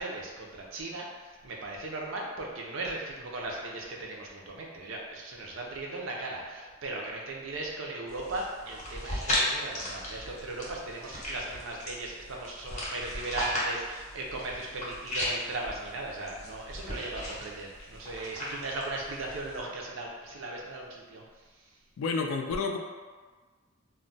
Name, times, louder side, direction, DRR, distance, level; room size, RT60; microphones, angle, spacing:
voice 1, 0.0-21.2, right 2 dB, 60° right, -1 dB, 0.5 m, -37 dB
sound 1, 8.1-19.6, left 1 dB, 30° left, 0.6 m, -36 dB
voice 2, 22.0-22.8, left 4 dB, 70° left, 3 dB, 0.3 m, -30 dB
2.3 x 2.1 x 3.8 m, 1.4 s
head